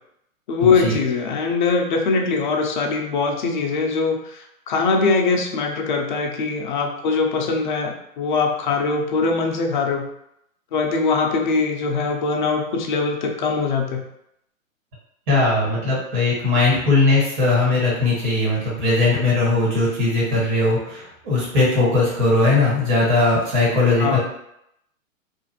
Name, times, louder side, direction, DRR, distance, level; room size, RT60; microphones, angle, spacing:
voice 1, 0.5-10.1 10.7-14.0 24.0-24.2, left 4 dB, 40° left, 2 dB, 0.4 m, -22 dB
voice 2, 15.3-24.2, left 2 dB, 40° right, -6 dB, 1.5 m, -19 dB
2.5 x 2.4 x 2.8 m, 0.77 s
hypercardioid pair, 135°, 41 cm